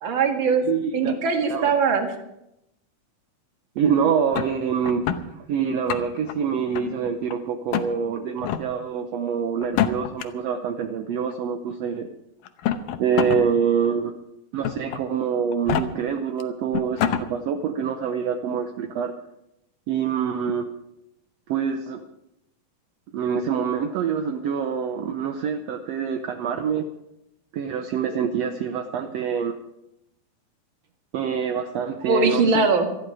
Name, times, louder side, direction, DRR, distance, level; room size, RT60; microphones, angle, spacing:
voice 1, 0.0-0.6 0.9-2.1 32.1-33.0, right 4 dB, 45° right, 4 dB, 2.1 m, -21 dB
voice 2, 0.7-1.2 1.5-1.7 3.7-5.0 5.5-12.1 13.0-14.1 14.5-19.1 19.9-20.7 21.5-22.0 23.1-26.9 27.5-29.5 31.1-32.7, right 7 dB, 70° right, 5 dB, 1.6 m, -25 dB
sound 1, 4.3-5.2 5.7-6.3 6.7-7.3 7.7-7.9 8.4-8.6 9.6-10.2 11.3-11.4 12.5-13.4 13.8-13.9 14.6-15.0 15.5-15.8 16.4-16.5 16.7-17.2, left 10 dB, 85° left, 2.6 m, -25 dB
19.0 x 13.5 x 4.9 m, 0.85 s
omnidirectional pair, 3.9 m